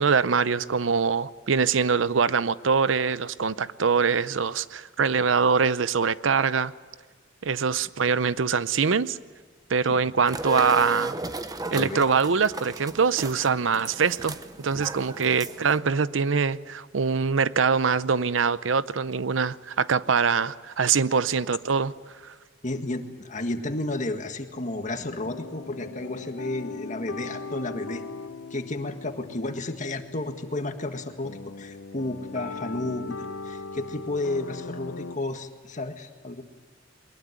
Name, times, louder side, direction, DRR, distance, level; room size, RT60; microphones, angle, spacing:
voice 1, 0.0-6.7 7.4-9.2 9.7-11.1 11.7-21.9 22.2-22.3, right 5 dB, 85° right, 0.7 m, -23 dB
sound 1, 10.3-15.8, right 3 dB, 20° right, 1.0 m, -35 dB
voice 2, 11.7-12.0 22.6-28.0 28.5-36.4, left 2 dB, 40° left, 1.8 m, -32 dB
sound 2, 25.0-35.2, left 4 dB, 90° left, 0.8 m, -40 dB
23.0 x 20.5 x 9.5 m
head